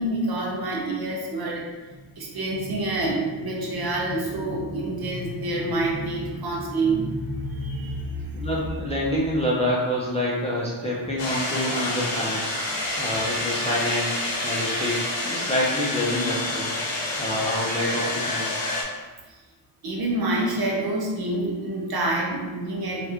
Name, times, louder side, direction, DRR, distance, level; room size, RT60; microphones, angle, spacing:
voice 1, 0.0-8.5 19.8-23.1, right 2 dB, 50° right, -1 dB, 0.6 m, -27 dB
voice 2, 8.3-12.5 13.0-14.1 14.4-16.7 17.2-18.7, left 1 dB, 15° left, -6 dB, 0.4 m, -27 dB
sound 1, 11.2-18.8, left 2 dB, 65° left, 0.8 m, -28 dB
2.9 x 2.4 x 3.4 m, 1.3 s
wide cardioid pair, 160°, 48 cm